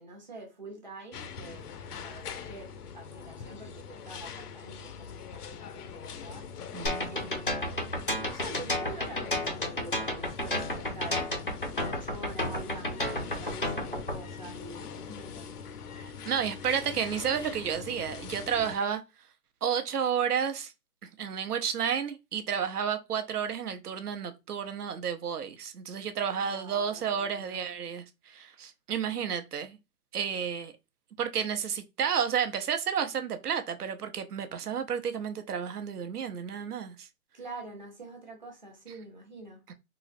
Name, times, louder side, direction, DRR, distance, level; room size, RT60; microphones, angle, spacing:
voice 1, 0.0-1.7 1.9-6.7 7.1-11.3 11.8-15.5 26.3-27.7 37.3-39.6, right 2 dB, 30° right, 0.7 m, -46 dB
sound 1, 1.1-18.8, left 6 dB, 80° left, 0.6 m, -43 dB
voice 2, 6.7-7.1 16.0-19.0 19.6-20.7 21.2-29.8 30.1-30.7 31.2-37.1 39.7-39.8, right 7 dB, 80° right, 0.8 m, -31 dB
sound 2, 6.9-14.2, left 1 dB, 40° left, 0.4 m, -31 dB
3.8 x 2.0 x 2.5 m
hypercardioid pair, 180°, 45 cm